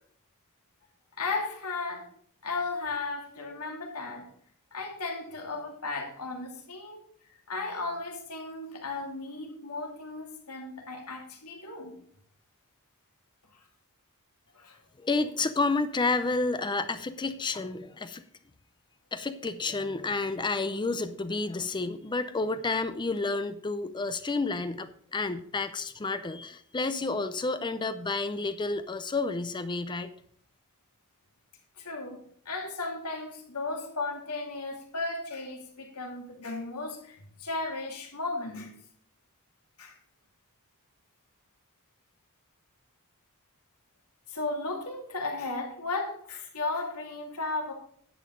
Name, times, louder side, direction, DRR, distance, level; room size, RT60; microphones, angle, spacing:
voice 1, 1.2-2.1 2.4-4.3 4.7-7.0 7.5-11.9 13.5-13.6 14.5-14.8 31.8-32.2 32.4-38.7 39.8-40.0 44.3-47.7, left 3 dB, 85° left, 1 dB, 2.5 m, -35 dB
voice 2, 15.0-18.2 19.1-30.1, left 3 dB, 20° left, 11 dB, 0.5 m, -30 dB
10.0 x 8.5 x 3.8 m, 0.62 s
head